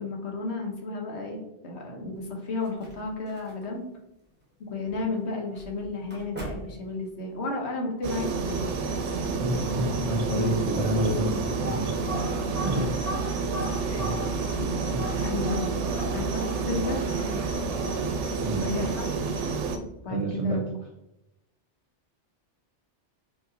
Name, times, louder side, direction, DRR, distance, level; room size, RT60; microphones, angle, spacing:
voice 1, 0.0-3.9 4.6-8.7 13.9-14.0 15.2-15.7 16.1-17.0 18.6-19.0 20.0-20.6, left 3 dB, 70° left, 1 dB, 1.1 m, -33 dB
sound 1, 2.1-7.5, right 2 dB, 10° right, 1.0 m, -45 dB
sound 2, 8.0-19.8, right 4 dB, 85° right, 0.9 m, -29 dB
voice 2, 9.4-12.2 12.6-12.9 14.0-14.2 14.6-15.1 18.4-18.7 20.1-20.6, right 1 dB, 55° right, -1 dB, 0.3 m, -29 dB
sound 3, 11.3-19.0, right 1 dB, 35° right, 0.8 m, -39 dB
5.0 x 2.9 x 2.6 m, 0.88 s
omnidirectional pair, 1.2 m